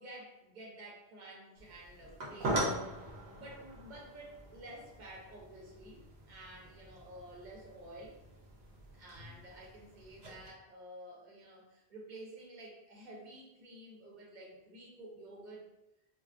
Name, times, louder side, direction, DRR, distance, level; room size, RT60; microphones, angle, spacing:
voice 1, 0.0-8.2 8.9-15.6, right 1 dB, 55° right, -3 dB, 0.7 m, -51 dB
sound 1, 1.6-10.5, right 1 dB, 85° right, 0.9 m, -42 dB
2.4 x 2.2 x 2.4 m, 0.92 s
omnidirectional pair, 1.0 m